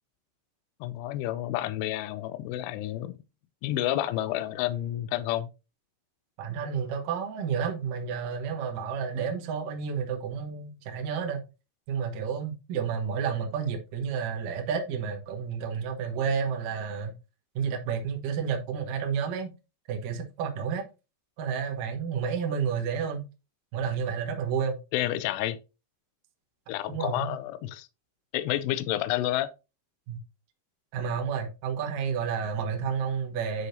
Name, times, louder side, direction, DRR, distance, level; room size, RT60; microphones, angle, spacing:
voice 1, 0.8-3.1 3.6-5.5 24.9-25.6 26.7-27.9 28.3-29.5, left 14 dB, 90° left, 2.4 m, -30 dB
voice 2, 6.4-11.4 11.9-17.1 17.6-19.5 19.9-20.8 21.4-23.2 23.7-24.8 26.9-27.3 30.1-30.2 30.9-33.7, right 6 dB, 70° right, 2.1 m, -30 dB
9.5 x 4.8 x 2.6 m
omnidirectional pair, 5.4 m